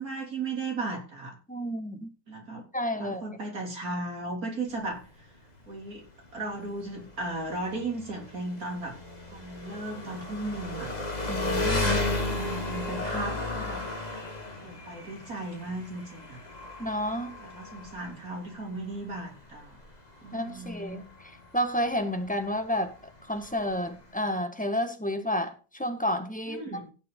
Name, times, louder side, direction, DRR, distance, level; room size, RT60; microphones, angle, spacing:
voice 1, 0.0-1.4 2.3-2.6 2.9-5.3 5.7-6.1 6.3-9.0 9.3-10.9 11.9-13.8 14.6-16.4 17.4-19.8 20.2-21.1 26.5-26.9, right 2 dB, 65° right, 0 dB, 3.9 m, -36 dB
voice 2, 1.5-2.1 2.7-3.3 11.3-12.1 16.8-17.3 20.3-21.0 21.5-22.9 23.3-26.6, equal, 5° left, 6 dB, 1.5 m, -30 dB
Engine, 4.7-24.3, left 2 dB, 25° left, 2.4 m, -35 dB
16.5 x 6.9 x 3.9 m, 0.33 s
omnidirectional pair, 1.7 m